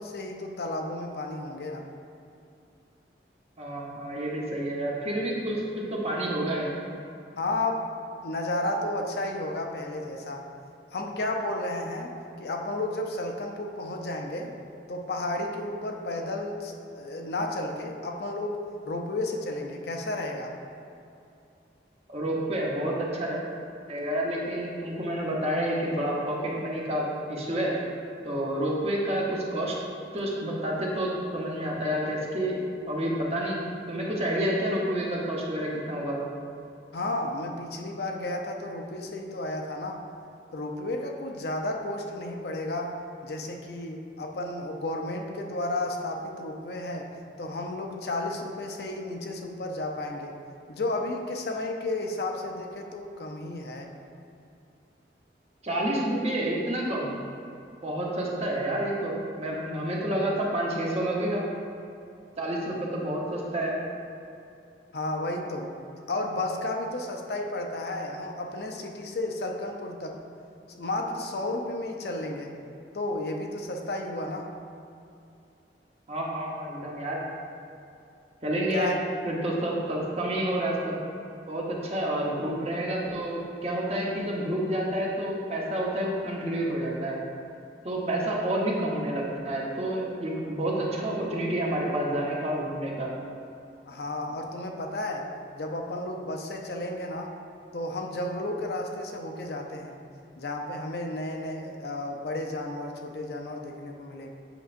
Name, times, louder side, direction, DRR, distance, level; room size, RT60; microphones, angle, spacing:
voice 1, 0.0-1.8 7.4-7.9 8.2-10.5 10.9-14.6 14.9-18.6 18.8-20.5 36.9-40.0 40.5-43.0 43.2-47.1 47.4-50.3 50.7-53.9 64.9-65.7 66.1-70.2 70.7-72.5 72.9-74.5 78.7-79.0 93.9-97.3 97.7-100.0 100.4-104.3, left 2 dB, 60° left, 2 dB, 0.6 m, -32 dB
voice 2, 3.6-6.7 22.1-23.4 23.9-27.8 28.2-29.8 30.1-32.6 32.9-33.6 33.9-36.2 55.6-57.1 57.8-61.4 62.4-63.8 76.1-77.2 78.4-78.9 79.2-81.0 81.5-87.2 87.8-93.1, right 1 dB, 35° right, -3 dB, 0.9 m, -29 dB
7.9 x 5.5 x 2.5 m, 2.6 s
head